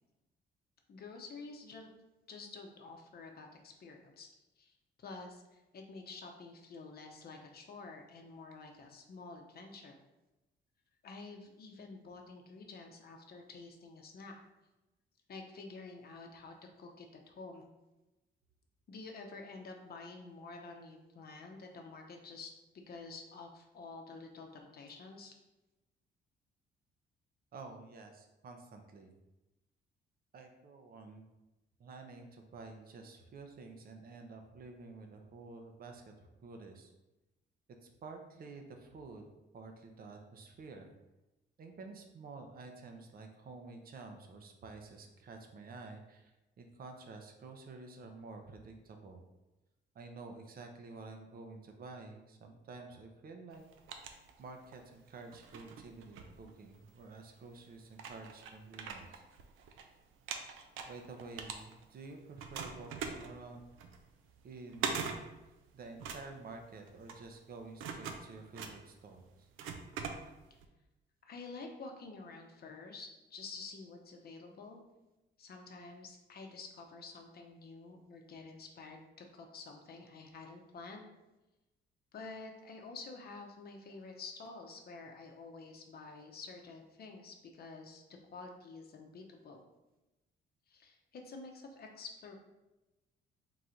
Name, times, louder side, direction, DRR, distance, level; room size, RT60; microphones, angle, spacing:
voice 1, 0.9-1.9 2.3-4.3 4.6-4.7 5.0-10.0 11.0-14.3 15.3-17.7 18.9-25.3 71.2-74.8 75.4-81.1 82.1-88.0 88.3-89.6 90.7-92.4, left 3 dB, 50° left, 2 dB, 0.8 m, -49 dB
voice 2, 27.5-29.1 30.3-31.2 31.8-36.9 37.8-40.9 41.6-46.3 46.6-49.2 49.9-53.6 54.1-59.2 60.8-63.8 64.4-65.2 65.7-69.5, right 3 dB, 50° right, 4 dB, 0.7 m, -50 dB
sound 1, 53.5-54.8 55.3-57.0 57.6-57.7 57.9-59.8 60.1-62.0 62.4-70.6, right 6 dB, 85° right, 0.5 m, -43 dB
3.9 x 2.5 x 4.4 m, 1.0 s
cardioid pair, 90°, 20 cm